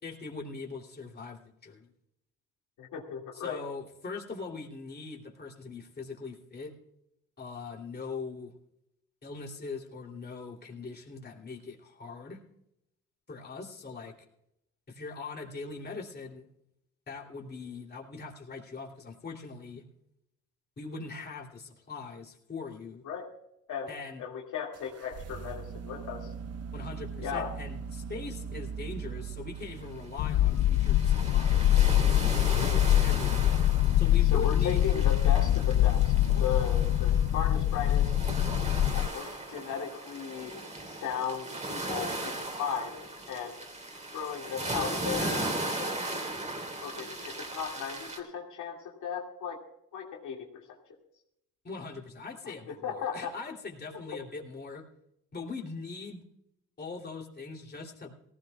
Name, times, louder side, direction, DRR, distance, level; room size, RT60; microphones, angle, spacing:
voice 1, 0.0-1.9 3.3-6.7 7.4-8.5 9.2-12.4 13.3-14.1 14.9-16.4 17.1-19.8 20.8-23.0 23.9-24.2 26.7-31.9 32.3-33.5 34.0-34.8 51.6-54.9 55.3-56.2 56.8-58.1, left 4 dB, 35° left, 0 dB, 3.0 m, -41 dB
voice 2, 2.8-3.6 23.0-23.3 23.7-26.3 27.2-27.6 32.4-32.8 34.2-38.1 38.9-40.6 40.9-43.0 43.3-43.6 44.1-46.0 46.8-49.6 49.9-50.8 52.4-53.3 53.9-54.0, left 7 dB, 75° left, 0 dB, 2.3 m, -36 dB
sound 1, 24.7-30.6, right 6 dB, 55° right, 0.9 m, -40 dB
sound 2, 30.0-30.1 30.5-48.2, right 2 dB, 25° right, 3.2 m, -37 dB
sound 3, 30.2-39.1, left 12 dB, 60° left, 0.5 m, -24 dB
18.0 x 16.5 x 2.3 m, 0.80 s
cardioid pair, 90°, 30 cm